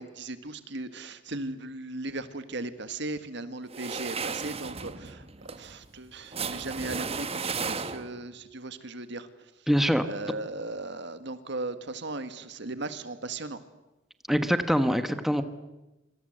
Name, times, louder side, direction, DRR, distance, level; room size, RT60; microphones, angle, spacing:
voice 1, 0.0-9.7 10.0-13.6, right 2 dB, 65° right, 11 dB, 1.8 m, -37 dB
sound 1, 3.7-8.3, right 5 dB, 30° right, 1.1 m, -35 dB
voice 2, 9.7-10.1 14.3-15.4, equal, ahead, 9 dB, 1.3 m, -24 dB
26.5 x 25.5 x 8.0 m, 1.0 s
head